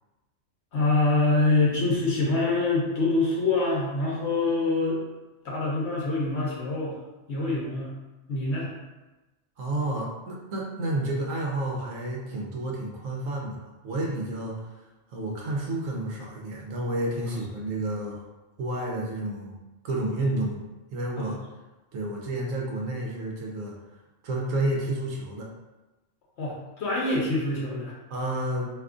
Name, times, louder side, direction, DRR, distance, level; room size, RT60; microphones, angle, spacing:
voice 1, 0.7-5.0 5.4-7.0 7.3-7.9 8.3-8.7 21.2-21.3 26.4-27.9, left 2 dB, 60° left, -4 dB, 0.9 m, -25 dB
voice 2, 9.6-14.7 15.1-18.2 18.6-19.6 19.8-20.6 20.9-21.4 21.9-23.8 24.2-25.5 28.1-28.7, right 1 dB, 85° right, -2 dB, 1.0 m, -30 dB
2.7 x 2.3 x 3.6 m, 1.1 s
omnidirectional pair, 1.3 m